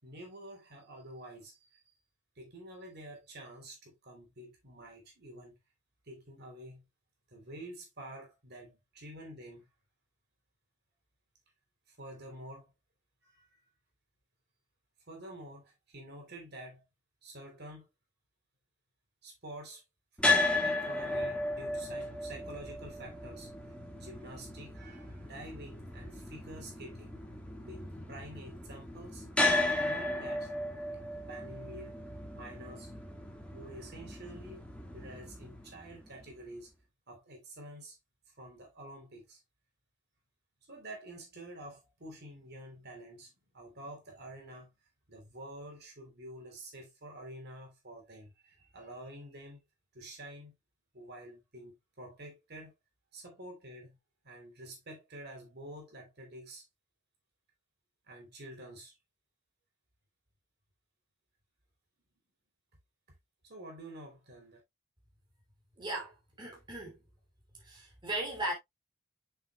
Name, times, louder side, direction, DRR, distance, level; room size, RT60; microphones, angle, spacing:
voice 1, 0.0-1.9 2.3-5.6 6.0-6.8 7.3-9.7 11.9-12.7 13.2-13.7 15.1-16.8 17.2-17.9 19.2-19.8 20.6-27.2 27.6-29.2 29.8-30.5 31.1-31.9 32.3-32.9 33.5-34.6 34.9-36.7 37.1-38.0 38.4-39.4 40.7-44.7 45.1-49.6 49.9-50.5 50.9-52.7 53.1-54.0 54.2-56.6 58.1-58.9 63.4-64.6, right 1 dB, 50° right, 3.4 m, -48 dB
sound 1, 20.2-36.3, left 2 dB, 5° left, 1.8 m, -35 dB
voice 2, 65.8-67.0 67.6-68.5, right 1 dB, 20° right, 2.9 m, -37 dB
8.3 x 6.6 x 2.3 m
head